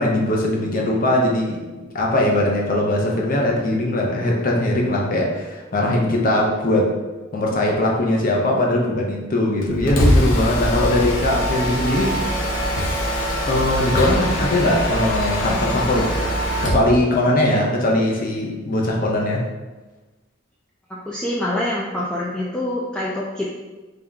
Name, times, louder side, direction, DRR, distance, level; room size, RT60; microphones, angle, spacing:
voice 1, 0.0-1.6 1.9-6.9 7.3-12.2 13.1-16.1 16.6-19.5, left 1 dB, 45° left, -1 dB, 0.7 m, -20 dB
Mechanisms, 9.6-16.9, equal, 85° left, 0.8 m, -22 dB
voice 2, 20.9-23.5, left 1 dB, 5° left, -6 dB, 0.3 m, -25 dB
3.4 x 2.9 x 3.8 m, 1.2 s
head